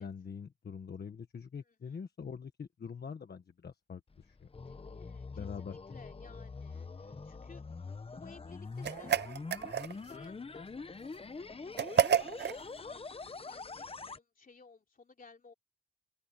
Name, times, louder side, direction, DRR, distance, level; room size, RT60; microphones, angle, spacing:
voice 1, 0.0-4.5 5.3-5.8, left 6 dB, 70° left, 1.3 m, -44 dB
sound 1, 4.1-14.2, left 4 dB, 35° left, 0.9 m, -45 dB
voice 2, 4.7-5.5 5.9-7.6 8.1-15.5, left 4 dB, 55° left, 3.2 m, -57 dB
sound 2, 8.8-10.2 11.8-12.6, right 8 dB, 80° right, 0.5 m, -30 dB
open air
wide cardioid pair, 115°, 17 cm